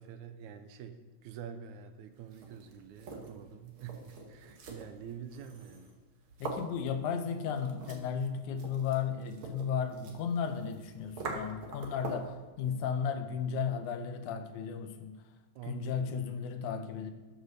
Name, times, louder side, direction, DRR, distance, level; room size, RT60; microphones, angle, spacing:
voice 1, 0.0-5.9 15.6-16.0, right 8 dB, 85° right, 9 dB, 2.1 m, -46 dB
sound 1, 2.2-12.4, right 3 dB, 55° right, 1.8 m, -45 dB
voice 2, 6.4-15.2 15.7-17.1, left 7 dB, 85° left, 8 dB, 2.2 m, -34 dB
10.0 x 5.2 x 6.6 m, 1.3 s
omnidirectional pair, 3.4 m